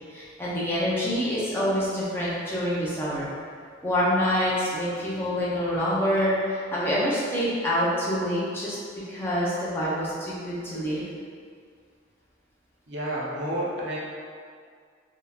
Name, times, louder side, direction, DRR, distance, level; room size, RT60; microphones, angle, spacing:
voice 1, 0.1-3.3 3.8-8.8 9.1-11.1, equal, 10° left, -9 dB, 0.6 m, -26 dB
voice 2, 12.9-14.0, right 1 dB, 65° right, -6 dB, 0.7 m, -30 dB
3.7 x 2.7 x 2.3 m, 2.1 s
head